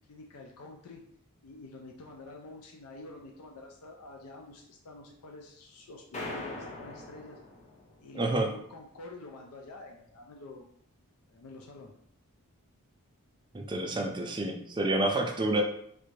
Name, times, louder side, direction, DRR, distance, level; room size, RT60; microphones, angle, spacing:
voice 1, 0.1-1.0 1.4-7.4 8.0-10.6 11.3-11.9 14.9-15.2, left 2 dB, 75° left, 1 dB, 0.4 m, -48 dB
sound 1, 6.1-8.1, left 2 dB, 30° left, 0.6 m, -41 dB
voice 2, 8.1-8.5 13.5-15.6, right 2 dB, 20° right, 2 dB, 0.4 m, -29 dB
3.3 x 2.5 x 3.1 m, 0.68 s
head